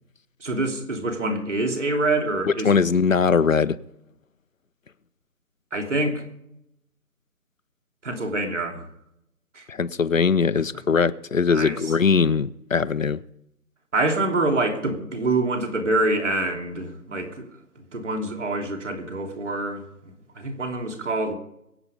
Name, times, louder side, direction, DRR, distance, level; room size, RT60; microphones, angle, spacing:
voice 1, 0.4-2.9 5.7-6.2 8.0-8.8 9.5-9.6 11.5-11.9 13.9-17.5 17.8-21.3, right 2 dB, 50° right, 3.1 m, -26 dB
voice 2, 2.6-3.8 9.7-13.2, left 5 dB, 55° left, 0.8 m, -21 dB
23.5 x 8.8 x 5.1 m
figure-of-eight pair, 160°, 48 cm